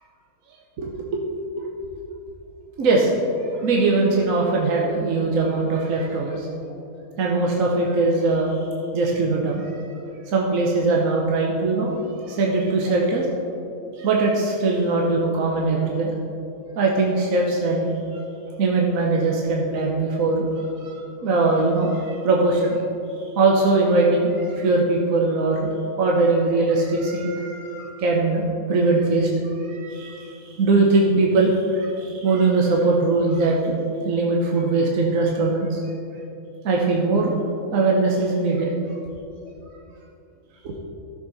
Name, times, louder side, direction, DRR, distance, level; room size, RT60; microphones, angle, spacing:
voice 1, 0.8-1.2 1.6-1.7 2.8-3.1 3.4-6.5 7.2-8.7 8.9-9.8 10.3-11.9 12.2-13.3 13.9-16.2 16.7-18.2 18.6-22.8 23.3-25.7 26.0-33.8 34.0-35.8 36.6-37.4 37.7-38.7 40.6-40.8, right 3 dB, 65° right, -2 dB, 1.3 m, -21 dB
14.0 x 6.4 x 4.1 m, 2.8 s
omnidirectional pair, 1.5 m